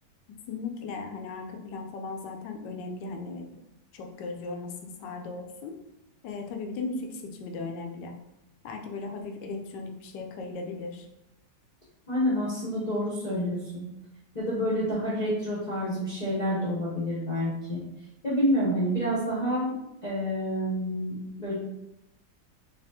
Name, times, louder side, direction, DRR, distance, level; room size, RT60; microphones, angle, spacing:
voice 1, 0.3-3.6 3.9-5.8 6.2-8.1 8.6-11.1, left 3 dB, 75° left, 3 dB, 1.2 m, -37 dB
voice 2, 12.1-13.9 14.3-17.8 18.2-19.7 20.0-21.6, equal, 35° left, -7 dB, 0.7 m, -28 dB
4.2 x 2.8 x 2.7 m, 0.89 s
omnidirectional pair, 2.0 m